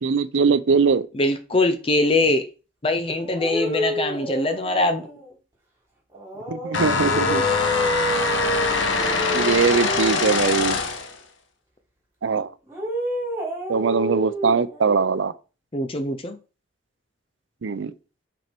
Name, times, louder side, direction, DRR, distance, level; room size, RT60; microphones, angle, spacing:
voice 1, 0.0-1.1 6.5-7.4 9.3-10.8 12.2-12.5 13.7-15.3 17.6-17.9, right 5 dB, 75° right, 0.5 m, -21 dB
voice 2, 1.1-2.4 2.8-5.0 15.7-16.4, left 2 dB, 30° left, 0.5 m, -22 dB
sound 1, 3.2-5.3 6.1-10.5 12.6-14.9, equal, 15° right, 2.9 m, -29 dB
sound 2, 6.7-11.2, left 4 dB, 75° left, 1.1 m, -23 dB
6.0 x 4.4 x 4.5 m
head